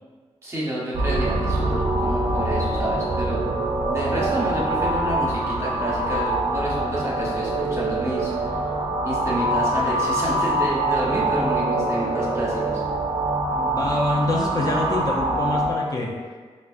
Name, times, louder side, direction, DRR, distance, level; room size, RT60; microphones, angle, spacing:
voice 1, 0.4-3.4 3.9-8.6 9.0-12.8, right 1 dB, 25° right, -6 dB, 0.9 m, -29 dB
sound 1, 0.9-15.7, right 2 dB, 50° right, 0.4 m, -24 dB
voice 2, 13.5-16.1, left 1 dB, 35° left, -3 dB, 0.4 m, -25 dB
4.7 x 2.0 x 2.4 m, 1.5 s
wide cardioid pair, 105°, 11 cm